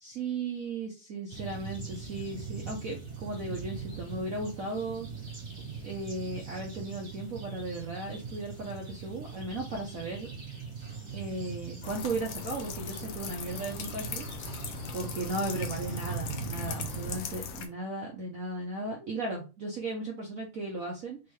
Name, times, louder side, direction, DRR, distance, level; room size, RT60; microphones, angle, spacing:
voice 1, 0.0-5.1 5.8-10.3 11.1-14.3 14.9-21.2, right 2 dB, 65° right, 0 dB, 0.8 m, -36 dB
sound 1, 1.3-17.2, right 5 dB, 20° right, 1.4 m, -41 dB
sound 2, 11.8-17.7, left 6 dB, 80° left, 1.6 m, -39 dB
4.6 x 2.6 x 3.2 m, 0.30 s
omnidirectional pair, 2.4 m